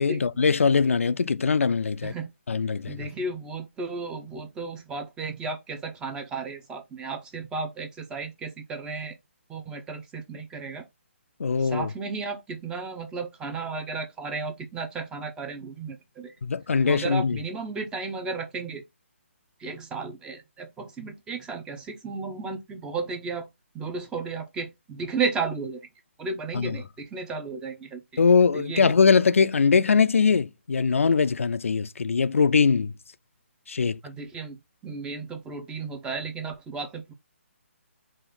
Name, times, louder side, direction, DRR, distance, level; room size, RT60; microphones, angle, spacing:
voice 1, 0.0-2.1 2.5-3.1 11.4-11.9 16.4-17.4 26.5-26.8 28.2-32.9 33.7-34.0, left 5 dB, 75° left, 0.4 m, -22 dB
voice 2, 2.9-9.1 9.5-10.9 11.6-16.3 16.8-18.8 19.6-23.4 23.7-25.8 26.2-28.0 28.5-28.9 34.0-34.6 34.8-37.1, right 4 dB, 10° right, 0.6 m, -34 dB
5.0 x 2.6 x 3.8 m
figure-of-eight pair, 145°, 7 cm